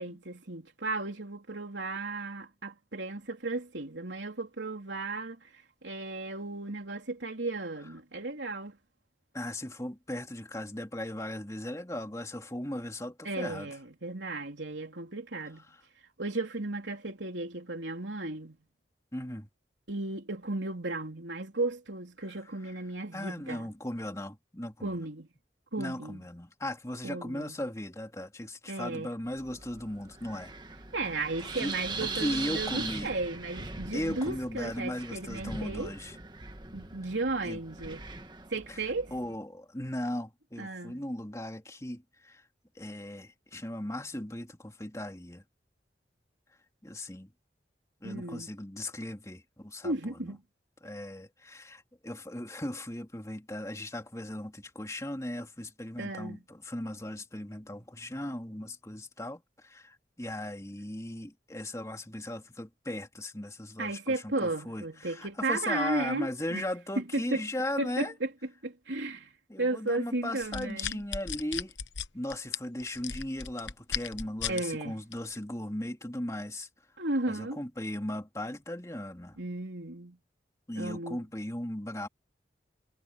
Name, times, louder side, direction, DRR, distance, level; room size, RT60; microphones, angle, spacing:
voice 1, 0.0-8.8 13.2-15.6 16.2-18.6 19.9-23.7 24.8-25.3 25.7-26.2 27.0-27.5 28.7-29.1 30.9-35.9 36.7-38.0 38.5-39.1 40.6-41.0 48.0-48.5 49.8-50.4 56.0-56.4 63.8-66.7 67.0-67.4 67.8-68.3 68.6-69.3 69.6-71.0 74.5-75.0 77.0-77.6 79.4-80.2 80.7-81.2, right 2 dB, 90° right, 3.5 m, -34 dB
voice 2, 9.3-13.7 19.1-19.5 23.1-25.0 25.8-30.5 31.6-31.7 32.0-33.1 33.9-36.2 37.4-37.6 38.7-38.8 39.1-42.4 42.7-45.4 46.8-47.3 48.0-50.3 50.8-68.1 69.5-71.7 72.1-76.7 77.3-79.4 80.7-82.1, left 1 dB, 15° left, 2.8 m, -37 dB
Wind, 29.2-39.3, right 3 dB, 25° right, 1.6 m, -41 dB
sound 1, 70.4-74.6 75.1-75.4, left 8 dB, 90° left, 1.1 m, -36 dB
head